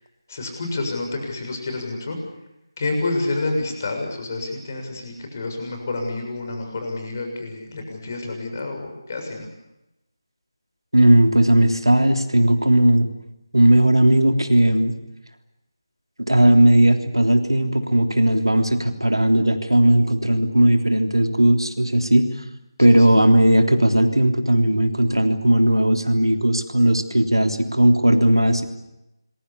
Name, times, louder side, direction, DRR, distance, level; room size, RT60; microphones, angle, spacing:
voice 1, 0.3-2.2 2.8-9.5 22.9-23.2, left 2 dB, 35° left, 4 dB, 6.9 m, -28 dB
voice 2, 10.9-13.1 13.5-15.0 16.2-22.3 22.8-28.7, right 1 dB, 80° right, 6 dB, 3.4 m, -17 dB
26.5 x 22.5 x 8.5 m, 0.93 s
figure-of-eight pair, 160°, 2 cm